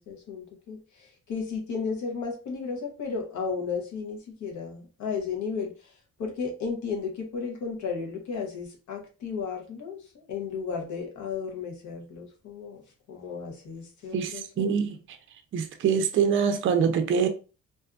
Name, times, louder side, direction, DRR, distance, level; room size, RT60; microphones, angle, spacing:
voice 1, 0.0-5.9 6.2-12.8 13.1-14.9, left 5 dB, 75° left, 0.9 m, -34 dB
voice 2, 14.1-15.0 15.5-17.3, right 7 dB, 40° right, 0.4 m, -24 dB
2.6 x 2.3 x 2.3 m
cardioid pair, 90°, 30 cm